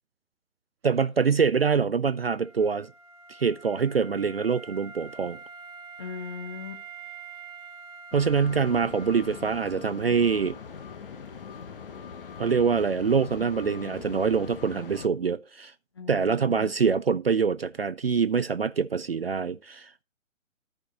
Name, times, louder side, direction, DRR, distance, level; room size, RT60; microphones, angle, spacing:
voice 1, 0.8-2.9 3.3-5.4 8.1-10.6 12.4-15.7 16.1-20.0, right 6 dB, 50° right, 0.5 m, -25 dB
Wind instrument woodwind instrument, 2.1-9.9, right 5 dB, 20° right, 0.9 m, -46 dB
voice 2, 6.0-6.8 15.9-16.7, left 6 dB, 20° left, 0.6 m, -39 dB
sound 1, 8.1-15.1, left 6 dB, 40° left, 1.0 m, -41 dB
13.5 x 5.1 x 3.9 m
figure-of-eight pair, 140°, 41 cm